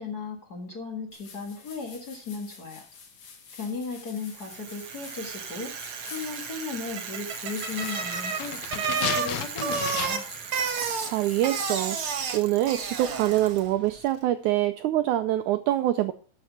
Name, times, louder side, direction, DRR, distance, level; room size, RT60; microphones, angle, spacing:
voice 1, 0.0-2.9 3.6-10.3, left 4 dB, 40° left, 1 dB, 1.6 m, -36 dB
sound 1, 1.1-12.2, left 5 dB, 55° left, 2.9 m, -48 dB
Bicycle, 4.3-13.7, right 6 dB, 65° right, 1.3 m, -32 dB
sound 2, 7.6-10.4 10.7-10.8, left 10 dB, 80° left, 2.7 m, -34 dB
voice 2, 11.0-12.0 12.3-16.1, right 14 dB, 85° right, 9 dB, 1.7 m, -25 dB
12.0 x 6.3 x 5.9 m, 0.41 s
omnidirectional pair, 4.1 m